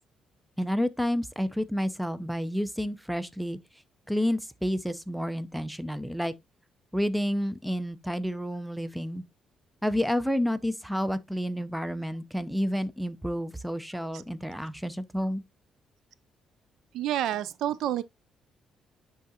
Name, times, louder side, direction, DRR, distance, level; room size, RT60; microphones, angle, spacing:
voice 1, 0.6-3.6 4.1-6.3 6.9-9.2 9.8-15.4, equal, ahead, 0.6 m, -30 dB
voice 2, 16.9-18.0, right 12 dB, 80° right, 0.4 m, -28 dB
10.0 x 3.7 x 2.8 m
cardioid pair, 90°, 0 cm